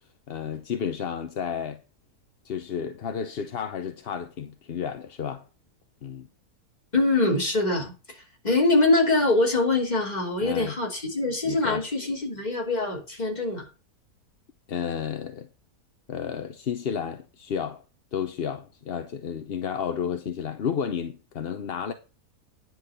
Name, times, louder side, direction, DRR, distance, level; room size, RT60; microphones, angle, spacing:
voice 1, 0.3-1.8 2.4-5.4 6.0-6.3 10.4-10.8 11.4-11.8 14.7-15.5 16.1-17.8 18.1-21.9, left 7 dB, 50° left, 0.8 m, -32 dB
voice 2, 6.9-8.2 8.4-13.6, left 2 dB, 25° left, 3.3 m, -24 dB
10.0 x 6.2 x 5.0 m
omnidirectional pair, 1.7 m